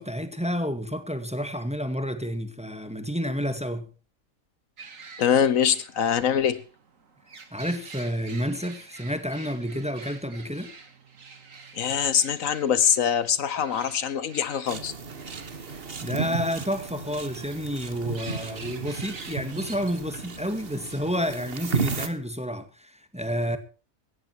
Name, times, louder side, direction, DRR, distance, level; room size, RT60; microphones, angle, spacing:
voice 1, 0.0-3.9 7.5-10.7 16.0-23.6, equal, 5° right, 1.8 m, -30 dB
sound 1, 4.8-20.2, right 5 dB, 70° right, 2.3 m, -47 dB
voice 2, 5.2-6.6 11.8-14.9, left 8 dB, 75° left, 1.3 m, -23 dB
sound 2, 14.7-22.1, right 4 dB, 45° right, 1.7 m, -34 dB
17.5 x 13.5 x 4.6 m
omnidirectional pair, 1.4 m